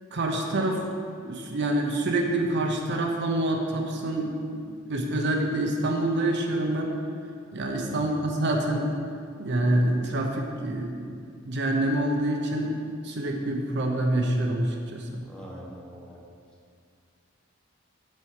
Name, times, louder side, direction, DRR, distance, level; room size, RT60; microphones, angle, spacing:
voice 1, 0.1-0.8 1.3-4.6 4.9-6.9 7.5-8.9 9.4-11.2 11.4-12.7 13.0-15.2, right 1 dB, 60° right, 1 dB, 0.8 m, -26 dB
voice 2, 7.9-8.2 15.2-16.2, equal, 5° left, -4 dB, 1.0 m, -44 dB
6.4 x 4.5 x 6.5 m, 2.3 s
head